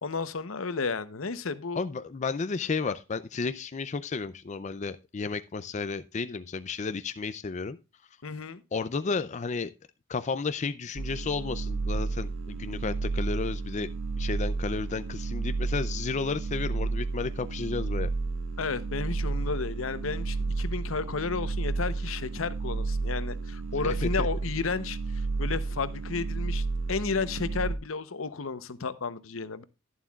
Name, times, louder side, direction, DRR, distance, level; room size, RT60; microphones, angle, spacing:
voice 1, 0.0-1.8 8.2-8.6 18.6-29.6, left 4 dB, 80° left, 0.8 m, -32 dB
voice 2, 1.7-7.8 8.7-9.7 10.1-13.9 14.2-18.1 23.8-24.3, left 4 dB, 35° left, 0.4 m, -32 dB
sound 1, 11.0-27.8, right 3 dB, 70° right, 0.9 m, -32 dB
11.5 x 11.0 x 2.3 m
head